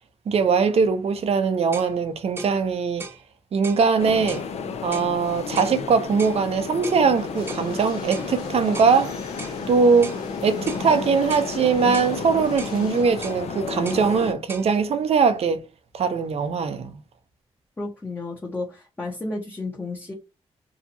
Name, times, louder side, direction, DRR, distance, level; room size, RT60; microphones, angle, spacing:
voice 1, 0.3-3.1 3.5-4.4 4.8-9.2 9.7-10.1 10.4-15.6 15.9-17.0, right 5 dB, 65° right, 0.6 m, -21 dB
sound 1, 1.7-1.9 2.4-2.6 3.0-3.2 3.6-3.9 4.3-4.5 4.9-5.1 5.6-5.8 6.2-6.4 6.8-7.0 7.5-7.7 8.1-8.3 8.7-9.0 9.4-9.6 10.0-10.2 10.7-10.9 11.3-11.5 11.9-12.2 12.6-12.8 13.2-13.4 13.9-14.1 14.5-14.7, right 3 dB, 20° right, 0.8 m, -38 dB
sound 2, 4.0-14.3, left 5 dB, 70° left, 0.5 m, -32 dB
sound 3, 7.2-13.0, left 2 dB, 40° left, 1.2 m, -42 dB
voice 2, 17.8-20.1, left 2 dB, 20° left, 0.8 m, -32 dB
2.8 x 2.4 x 2.6 m
cardioid pair, 80°, 11 cm